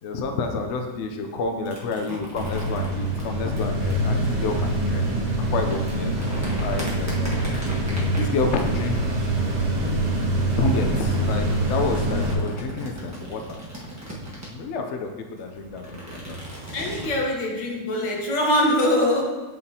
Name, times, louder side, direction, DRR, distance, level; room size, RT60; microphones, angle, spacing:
voice 1, 0.0-5.1 5.5-6.2 6.6-7.6 8.2-9.0 10.6-13.6 14.5-16.4, left 4 dB, 60° left, 4 dB, 0.8 m, -29 dB
sound 1, 1.6-3.9 5.3-10.2 10.9-14.7 15.4-17.1, equal, 10° right, 1.1 m, -38 dB
sound 2, 2.3-12.3, right 1 dB, 30° right, 0.9 m, -25 dB
voice 2, 16.7-19.2, left 1 dB, 80° left, -1 dB, 1.8 m, -22 dB
7.8 x 5.8 x 2.8 m, 1.2 s
omnidirectional pair, 1.8 m